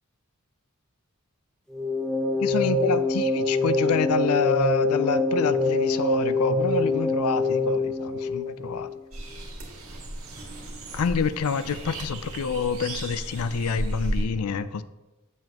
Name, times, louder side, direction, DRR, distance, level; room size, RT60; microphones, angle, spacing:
sound 1, 1.7-8.9, left 2 dB, 5° left, 0.5 m, -25 dB
voice 1, 2.4-8.9 10.9-14.8, left 5 dB, 80° left, 0.4 m, -27 dB
sound 2, 9.1-14.2, right 1 dB, 70° right, 1.8 m, -34 dB
7.7 x 7.2 x 2.9 m
head